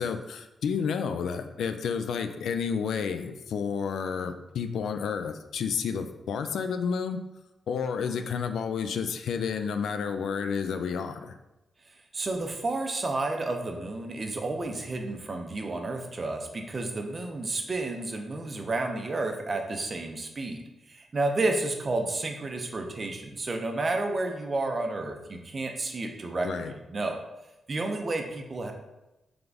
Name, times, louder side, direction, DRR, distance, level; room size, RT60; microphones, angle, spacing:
voice 1, 0.0-7.2 7.7-11.4 26.4-26.7, left 6 dB, 90° left, 8 dB, 0.3 m, -30 dB
voice 2, 12.1-27.2 27.7-28.7, right 2 dB, 30° right, 4 dB, 0.5 m, -31 dB
3.9 x 3.4 x 3.4 m, 0.98 s
wide cardioid pair, 155°, 0 cm